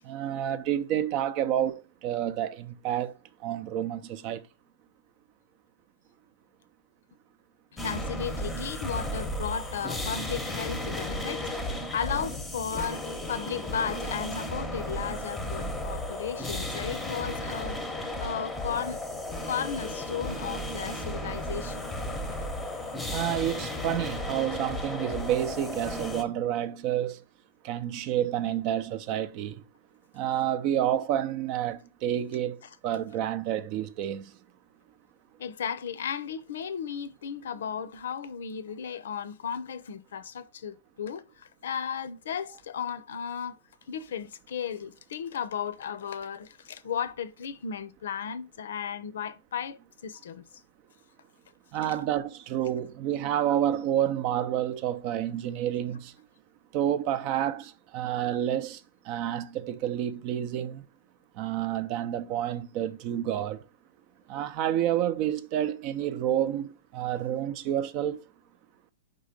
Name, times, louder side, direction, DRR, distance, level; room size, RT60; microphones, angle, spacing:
voice 1, 0.0-3.1 3.4-4.4 23.1-27.2 27.6-29.5 30.1-34.3 51.7-56.1 56.7-58.8 59.1-60.8 61.4-63.6 64.3-68.2, right 11 dB, 35° right, 0.5 m, -29 dB
voice 2, 7.8-17.8 18.2-19.0 19.5-21.9 35.4-43.6 43.9-50.4, left 7 dB, 70° left, 0.7 m, -35 dB
sound 1, 7.8-26.2, left 1 dB, 5° left, 0.9 m, -34 dB
5.1 x 3.8 x 5.1 m
hypercardioid pair, 155°, 0 cm